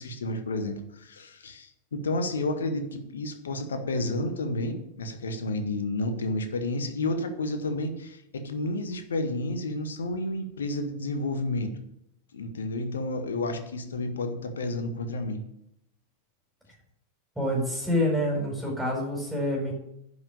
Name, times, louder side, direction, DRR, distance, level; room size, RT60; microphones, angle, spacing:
voice 1, 0.0-11.7 12.3-15.4, left 2 dB, 70° left, 7 dB, 1.6 m, -31 dB
voice 2, 17.3-19.7, left 1 dB, 5° right, -3 dB, 5.1 m, -27 dB
10.5 x 6.6 x 8.8 m, 0.79 s
figure-of-eight pair, 90°, 0 cm